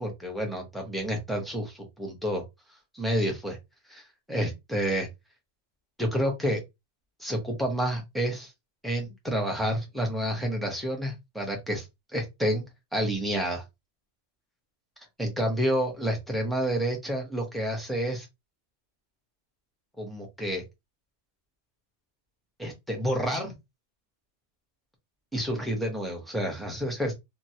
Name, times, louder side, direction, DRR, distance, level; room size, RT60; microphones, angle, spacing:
voice 1, 0.0-2.4 2.9-3.6 3.9-4.0 4.3-5.1 6.0-6.6 7.2-8.5 8.8-11.8 12.1-12.6 12.9-13.6 15.2-18.3 20.0-20.6 22.6-23.5 25.3-27.1, equal, ahead, 0.8 m, -29 dB
3.0 x 2.5 x 2.8 m
omnidirectional pair, 1.3 m